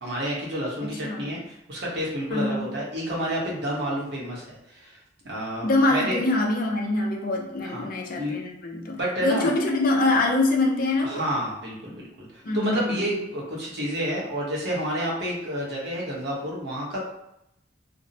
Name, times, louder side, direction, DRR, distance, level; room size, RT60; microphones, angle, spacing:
voice 1, 0.0-5.0 5.2-6.2 7.6-7.9 8.2-8.4 9.0-9.5 11.0-17.0, right 1 dB, 65° right, -4 dB, 0.8 m, -30 dB
voice 2, 1.0-1.4 2.3-2.7 5.6-11.2 12.4-13.0, left 2 dB, 50° left, 1 dB, 0.5 m, -24 dB
2.5 x 2.0 x 2.7 m, 0.82 s
head